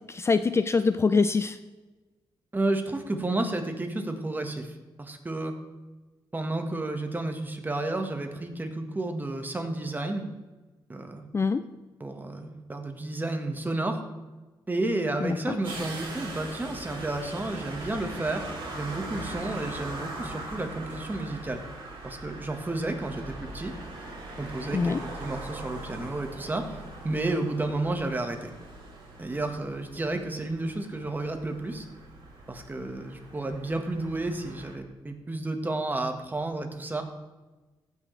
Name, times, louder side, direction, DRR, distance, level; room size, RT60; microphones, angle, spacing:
voice 1, 0.1-1.6 11.3-11.6 15.2-15.6 24.7-25.0, left 4 dB, 30° left, 11 dB, 0.4 m, -24 dB
voice 2, 2.5-5.5 6.3-10.2 10.9-11.2 12.0-14.0 14.7-18.5 18.7-21.6 22.0-23.7 24.4-28.5 29.2-31.9 32.5-37.0, right 2 dB, 20° right, 5 dB, 1.5 m, -31 dB
sound 1, 15.6-34.8, right 2 dB, 70° right, 3.3 m, -41 dB
15.0 x 6.3 x 3.3 m, 1.2 s
cardioid pair, 85°, 9 cm